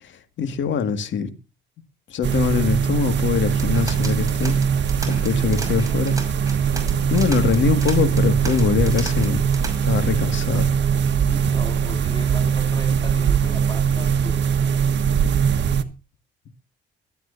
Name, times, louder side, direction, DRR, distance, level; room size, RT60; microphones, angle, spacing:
voice 1, 0.4-1.3 2.1-4.5 5.1-6.1 7.1-9.4 9.8-10.7, left 6 dB, 70° left, 2.0 m, -22 dB
sound 1, 2.2-15.8, right 7 dB, 65° right, 1.4 m, -21 dB
sound 2, 3.4-9.9, right 2 dB, 15° right, 6.1 m, -34 dB
voice 2, 11.2-14.4, left 1 dB, 20° left, 3.0 m, -38 dB
23.5 x 9.3 x 2.7 m
cardioid pair, 90°, 20 cm